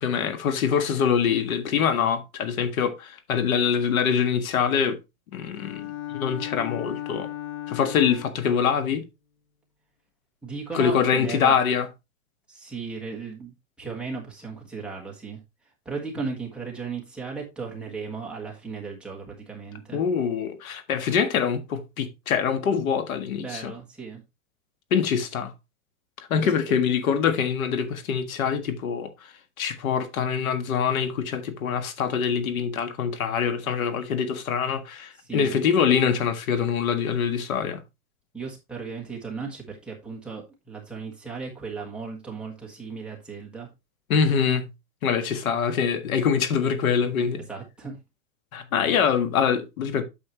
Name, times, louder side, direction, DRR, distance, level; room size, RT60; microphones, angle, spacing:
voice 1, 0.0-5.0 5.3-7.3 7.7-9.0 10.7-11.9 19.9-23.7 24.9-25.5 26.2-29.1 29.6-37.8 44.1-44.7 45.0-47.4 48.5-50.0, left 7 dB, 75° left, 1.7 m, -24 dB
Bowed string instrument, 5.5-8.6, left 13 dB, 55° left, 1.6 m, -36 dB
voice 2, 10.4-11.6 12.5-15.4 15.8-20.0 23.4-24.2 26.4-26.5 35.2-35.6 38.3-43.7 47.5-48.0, right 5 dB, ahead, 1.3 m, -36 dB
8.7 x 6.8 x 3.0 m
supercardioid pair, 175°, 42 cm